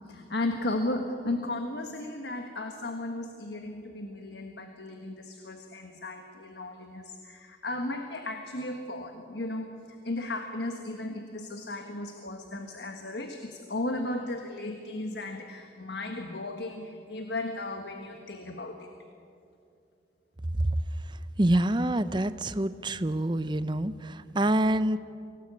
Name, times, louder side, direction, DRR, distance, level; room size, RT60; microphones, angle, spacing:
voice 1, 0.1-9.7 10.0-18.9, left 2 dB, 70° left, 5 dB, 1.6 m, -35 dB
voice 2, 21.4-25.0, right 1 dB, 25° right, 13 dB, 0.7 m, -26 dB
24.5 x 18.0 x 8.4 m, 2.6 s
head